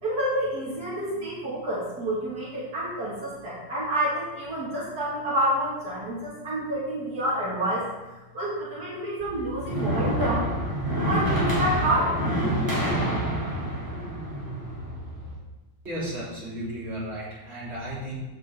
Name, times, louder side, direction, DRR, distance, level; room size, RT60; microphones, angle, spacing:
voice 1, 0.0-7.9 8.3-10.4 11.0-12.4, right 1 dB, 70° right, -8 dB, 2.9 m, -28 dB
sound 1, 9.2-15.3, equal, 10° right, 3.5 m, -27 dB
voice 2, 15.8-18.2, right 1 dB, 40° right, -8 dB, 3.6 m, -34 dB
14.5 x 5.5 x 3.8 m, 1.1 s
omnidirectional pair, 1.7 m